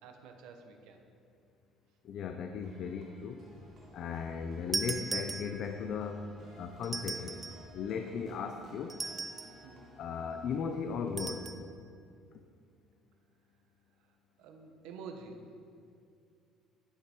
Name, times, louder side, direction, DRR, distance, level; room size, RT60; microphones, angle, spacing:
voice 1, 0.0-1.0 9.6-9.9 14.4-15.5, right 4 dB, 75° right, 4 dB, 1.2 m, -48 dB
voice 2, 2.0-3.4 3.9-7.4 7.7-9.0 10.0-11.6, left 6 dB, 45° left, 6 dB, 0.5 m, -37 dB
sound 1, 2.6-11.4, equal, 40° right, 2.1 m, -58 dB
sound 2, 4.7-5.9 6.8-7.7 8.9-9.7 11.2-11.6, right 4 dB, 20° right, 0.4 m, -38 dB
11.0 x 9.1 x 4.5 m, 2.4 s
cardioid pair, 170°, 0 cm